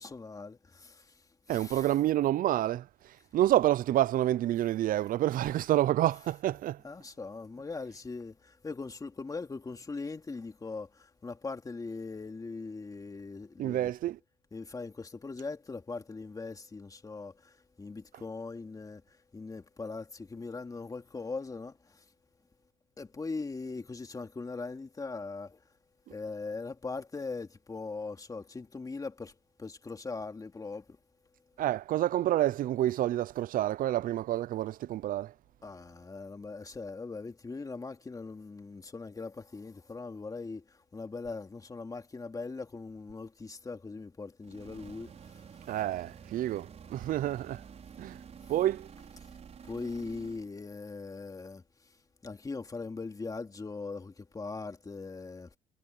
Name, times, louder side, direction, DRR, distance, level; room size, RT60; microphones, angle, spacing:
voice 1, 0.0-1.9 6.8-13.9 14.5-22.0 23.0-25.6 26.1-31.0 35.6-45.4 48.4-48.5 49.6-51.6 52.2-55.6, left 3 dB, 20° left, 2.8 m, -40 dB
voice 2, 1.5-2.9 3.3-6.8 13.6-14.2 31.6-35.3 45.7-47.6 48.0-48.2 48.5-48.9, right 13 dB, 55° right, 0.5 m, -28 dB
sound 1, 44.4-50.5, right 7 dB, 40° right, 5.4 m, -50 dB
cardioid pair, 110°, 17 cm